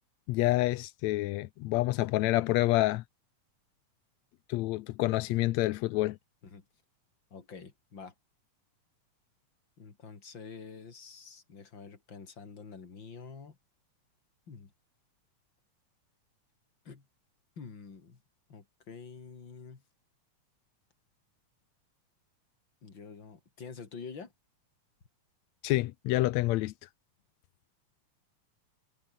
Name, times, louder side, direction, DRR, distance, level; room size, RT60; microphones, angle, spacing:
voice 1, 0.3-3.0 4.5-6.2 25.6-26.7, left 18 dB, 80° left, 1.7 m, -28 dB
voice 2, 7.3-8.1 9.8-13.6 14.5-14.7 16.9-17.1 17.6-18.2 18.5-19.8 22.8-24.3, left 5 dB, 35° left, 3.5 m, -47 dB
omnidirectional pair, 3.7 m